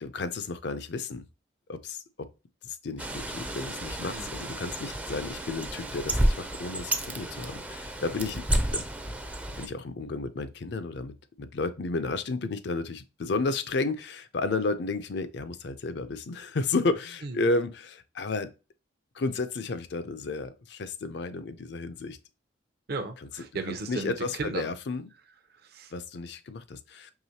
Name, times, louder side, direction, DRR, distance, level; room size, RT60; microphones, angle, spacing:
voice 1, 0.0-1.3 1.7-2.3 2.6-8.5 8.7-8.8 9.6-18.5 19.1-22.2 23.7-25.1 25.9-27.1, left 3 dB, 65° left, 0.5 m, -32 dB
Bird, 3.0-9.7, right 1 dB, 10° right, 0.4 m, -31 dB
voice 2, 22.9-24.7 25.5-25.9, right 3 dB, 55° right, 0.6 m, -36 dB
4.8 x 3.1 x 2.7 m
head